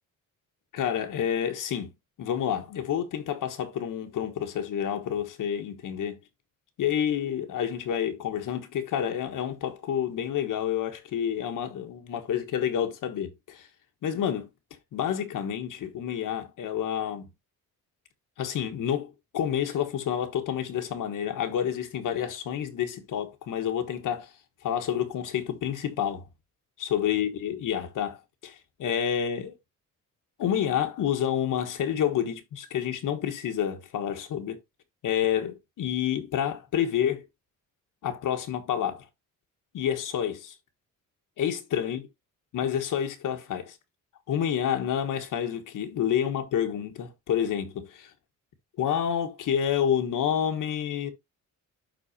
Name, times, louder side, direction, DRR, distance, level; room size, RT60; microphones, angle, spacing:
voice 1, 0.7-1.9 2.2-6.2 6.8-13.7 14.0-14.5 14.9-17.3 18.4-26.3 26.8-29.6 30.4-34.6 35.0-37.3 38.0-39.1 39.7-40.6 41.4-42.0 42.5-43.8 44.3-48.1 48.8-51.1, left 9 dB, 70° left, 1.5 m, -29 dB
11.5 x 4.1 x 2.8 m
cardioid pair, 160°, 32 cm